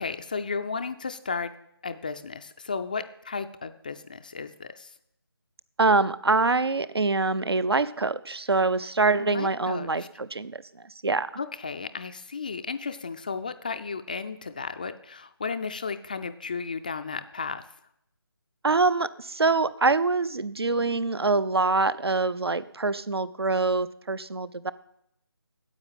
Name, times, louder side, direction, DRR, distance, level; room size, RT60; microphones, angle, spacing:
voice 1, 0.0-1.5 1.8-4.9 9.2-10.1 11.4-17.7, left 5 dB, 20° left, 10 dB, 0.4 m, -34 dB
voice 2, 5.8-11.3 18.6-24.7, right 3 dB, 75° right, 16 dB, 0.8 m, -25 dB
9.7 x 8.3 x 9.0 m, 0.75 s
figure-of-eight pair, 155°, 13 cm